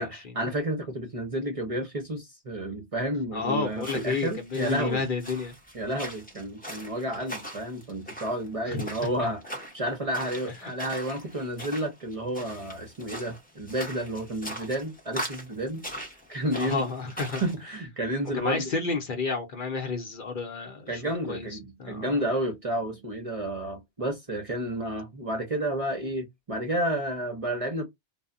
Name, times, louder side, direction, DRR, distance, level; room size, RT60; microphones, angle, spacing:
voice 1, 0.0-5.0 5.7-15.8 16.3-16.9 17.4-18.7 20.9-27.8, right 1 dB, 40° right, 0.6 m, -31 dB
voice 2, 3.3-5.5 8.7-9.1 10.6-10.7 16.6-17.4 18.3-21.0 21.3-22.2, left 4 dB, 55° left, 0.7 m, -31 dB
sound 1, 3.7-17.6, equal, 10° left, 0.6 m, -41 dB
2.2 x 2.0 x 3.6 m
omnidirectional pair, 1.1 m